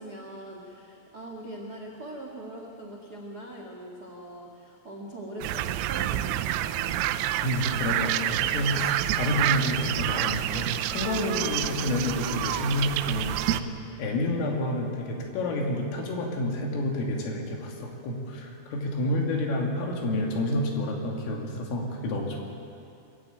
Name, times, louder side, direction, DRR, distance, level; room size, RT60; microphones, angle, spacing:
voice 1, 0.0-7.0, right 1 dB, 55° right, 0 dB, 1.0 m, -41 dB
sound 1, 5.4-13.6, right 13 dB, 80° right, 3.0 m, -28 dB
voice 2, 7.4-13.7 14.0-22.4, left 1 dB, 85° left, 0 dB, 5.2 m, -29 dB
24.5 x 14.5 x 9.3 m, 2.6 s
omnidirectional pair, 5.7 m